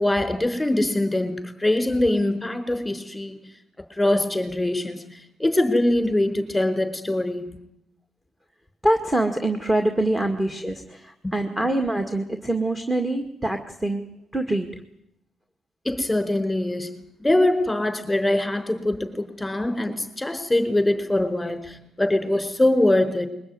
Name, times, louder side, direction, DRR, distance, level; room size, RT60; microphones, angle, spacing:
voice 1, 0.0-3.4 3.8-7.5 11.2-11.4 15.8-16.9 17.2-23.3, left 1 dB, 5° left, 4.6 m, -23 dB
voice 2, 8.8-14.8, right 1 dB, 10° right, 2.0 m, -25 dB
22.0 x 20.0 x 9.7 m
cardioid pair, 90°, 0 cm